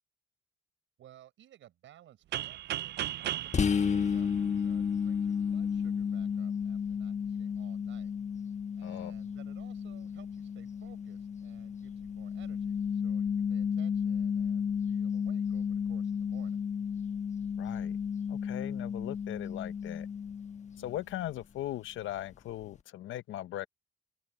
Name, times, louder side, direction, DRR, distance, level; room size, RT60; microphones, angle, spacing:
voice 1, 1.0-8.5 8.8-16.6 20.8-21.2, right 12 dB, 75° right, 6.3 m, -58 dB
sound 1, 2.3-5.1, right 13 dB, 60° right, 0.4 m, -37 dB
sound 2, 3.5-21.0, left 7 dB, 35° left, 1.1 m, -33 dB
voice 2, 8.8-9.1 17.6-18.0 18.3-20.1 20.8-23.7, left 14 dB, 80° left, 0.9 m, -39 dB
open air
cardioid pair, 90°, 20 cm